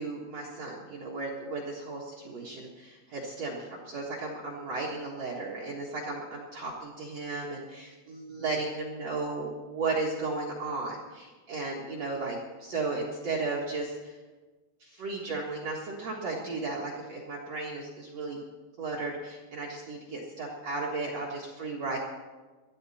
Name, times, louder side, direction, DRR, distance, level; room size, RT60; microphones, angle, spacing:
voice 1, 0.0-14.2 14.8-18.4 18.8-22.0, right 3 dB, 85° right, -4 dB, 1.4 m, -35 dB
20.5 x 13.0 x 4.3 m, 1.3 s
omnidirectional pair, 5.9 m